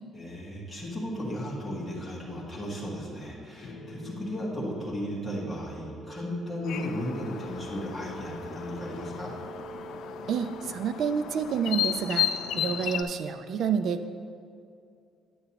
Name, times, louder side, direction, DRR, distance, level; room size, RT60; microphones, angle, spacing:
voice 1, 0.1-9.3, equal, 5° left, -7 dB, 1.3 m, -35 dB
sound 1, 3.6-11.5, right 2 dB, 50° left, 0.8 m, -45 dB
sound 2, 6.7-13.0, left 10 dB, 65° left, 0.3 m, -34 dB
voice 2, 10.3-12.3 12.5-14.2, right 6 dB, 50° right, 9 dB, 0.4 m, -29 dB
9.3 x 7.9 x 2.9 m, 2.4 s
cardioid pair, 180°, 0 cm